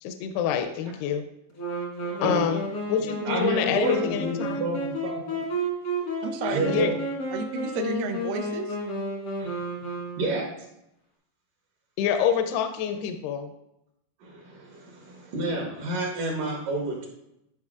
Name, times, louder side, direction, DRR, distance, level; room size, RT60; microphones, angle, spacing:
voice 1, 0.0-1.2 2.2-2.6 2.9-4.7 6.7-6.9 12.0-13.5, left 8 dB, 85° left, 7 dB, 2.5 m, -26 dB
Wind instrument woodwind instrument, 1.6-10.6, equal, 65° left, 1.0 m, -32 dB
voice 2, 2.0-2.5 3.3-5.4 6.4-6.9 9.4-9.6 10.2-10.5 14.2-17.1, right 2 dB, 70° right, -1 dB, 2.3 m, -30 dB
voice 3, 6.2-6.9 7.3-8.8, right 5 dB, 90° right, 4 dB, 1.9 m, -32 dB
10.5 x 5.3 x 2.4 m, 0.83 s
omnidirectional pair, 4.7 m